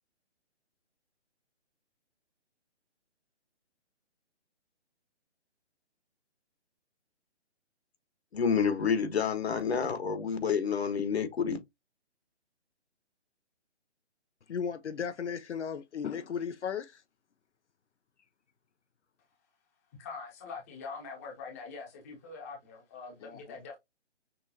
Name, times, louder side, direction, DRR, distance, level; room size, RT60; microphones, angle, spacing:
voice 1, 8.3-11.6, left 6 dB, 60° left, 1.4 m, -29 dB
voice 2, 14.5-17.0 23.2-23.4, left 7 dB, 75° left, 0.8 m, -35 dB
voice 3, 20.0-23.8, left 4 dB, 15° left, 0.9 m, -43 dB
6.1 x 3.1 x 2.8 m
hypercardioid pair, 165°, 35 cm